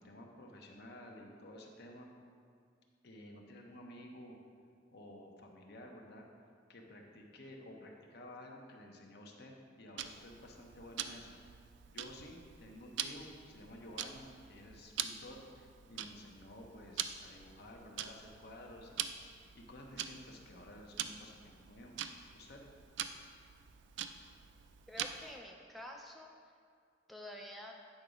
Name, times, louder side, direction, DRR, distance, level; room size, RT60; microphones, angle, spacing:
voice 1, 0.0-2.1 3.0-4.4 4.9-6.3 6.7-11.4 11.9-19.1 19.5-21.9 22.3-22.6, left 1 dB, 60° left, 1 dB, 0.9 m, -52 dB
Tick-tock, 10.0-25.4, right 9 dB, 70° right, 0.3 m, -45 dB
voice 2, 24.9-26.3 27.1-27.7, left 1 dB, ahead, 0 dB, 0.4 m, -48 dB
8.5 x 3.9 x 5.0 m, 2.2 s
head